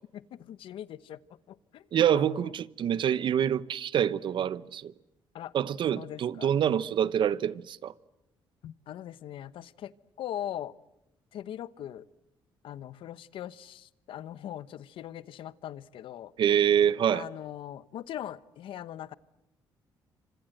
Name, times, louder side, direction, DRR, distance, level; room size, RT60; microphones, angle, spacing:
voice 1, 0.1-1.2 1.5-2.5 5.3-5.5 5.9-6.5 8.6-9.9 10.2-10.7 11.3-12.0 12.6-16.3 17.1-19.1, left 11 dB, 75° left, 1.0 m, -40 dB
voice 2, 1.9-4.9 5.5-7.9 16.4-17.2, right 9 dB, 65° right, 0.9 m, -26 dB
28.0 x 26.0 x 7.9 m
cardioid pair, 95°, 9 cm